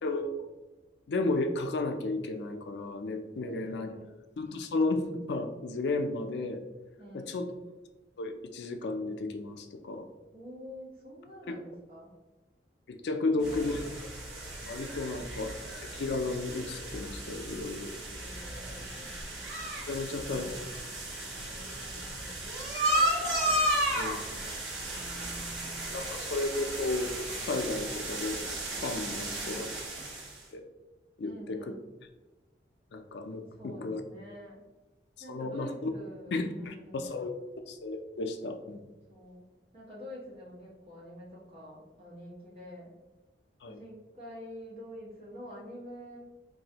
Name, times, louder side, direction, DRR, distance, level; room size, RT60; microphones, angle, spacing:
voice 1, 1.1-4.0 4.4-6.6 7.1-7.5 8.2-10.1 11.5-11.6 12.9-13.9 14.6-15.5 15.9-17.9 19.9-20.6 23.8-24.2 25.9-27.1 27.4-28.5 28.8-29.7 30.5-30.7 31.2-31.7 32.9-34.0 35.3-35.9 36.3-37.3 37.7-38.8 43.6-43.8, left 2 dB, 70° left, 6 dB, 0.4 m, -33 dB
voice 2, 3.3-4.0 7.0-7.4 10.3-12.1 13.2-13.9 18.0-19.2 20.0-22.4 24.8-26.1 29.2-29.7 31.2-31.9 33.5-34.6 35.2-37.1 39.1-39.4 39.7-43.0 43.6-46.2, equal, 35° right, -7 dB, 1.4 m, -48 dB
sound 1, 13.4-30.4, right 1 dB, 85° right, 0.9 m, -34 dB
4.0 x 2.6 x 2.8 m, 1.1 s
head